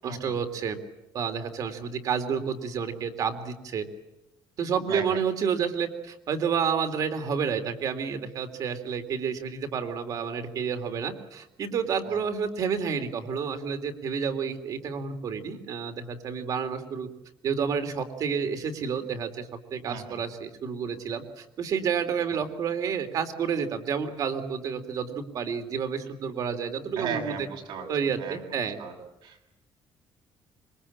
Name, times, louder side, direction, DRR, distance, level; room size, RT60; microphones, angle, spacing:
voice 1, 0.0-0.8 1.1-3.8 4.6-17.1 17.4-27.5 27.9-28.8, right 6 dB, 45° right, 7 dB, 3.2 m, -30 dB
voice 2, 4.9-5.2 12.0-12.2 19.9-20.2 27.0-27.9 28.2-28.4 28.8-28.9 29.2-29.5, right 6 dB, 75° right, 1 dB, 7.1 m, -35 dB
26.0 x 23.5 x 8.7 m, 0.90 s
cardioid pair, 175°, 8 cm